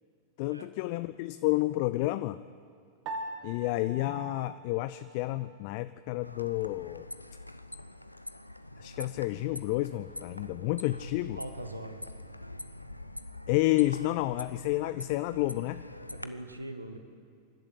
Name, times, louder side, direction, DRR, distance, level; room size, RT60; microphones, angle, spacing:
voice 1, 0.4-2.4 3.4-7.1 8.8-11.4 13.5-15.8, left 18 dB, 45° left, 14 dB, 0.4 m, -30 dB
Piano, 3.1-5.6, right 2 dB, 40° right, 2.1 m, -42 dB
sound 1, 6.2-16.3, left 1 dB, 85° left, 0.6 m, -45 dB
voice 2, 11.4-12.1 16.1-17.0, right 1 dB, 85° right, 8 dB, 1.4 m, -41 dB
26.0 x 12.0 x 8.3 m, 2.3 s
figure-of-eight pair, 90°, 0 cm